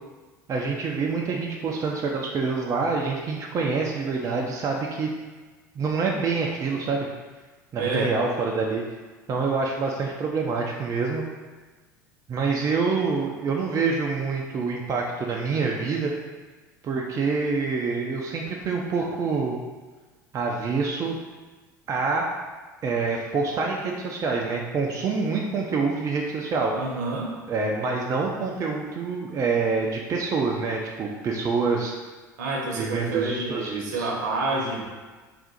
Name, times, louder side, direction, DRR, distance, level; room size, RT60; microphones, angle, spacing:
voice 1, 0.5-5.1 5.8-7.1 7.7-8.8 9.3-11.2 12.3-16.1 16.8-19.5 20.3-21.2 21.9-22.3 22.8-26.7 27.5-31.9 32.7-34.1, right 4 dB, 30° right, -1 dB, 0.5 m, -26 dB
voice 2, 7.8-8.1 19.0-19.1 26.7-27.3 32.4-34.9, right 3 dB, 65° right, -2 dB, 0.8 m, -28 dB
3.6 x 2.4 x 4.1 m, 1.3 s
figure-of-eight pair, 70°, 10 cm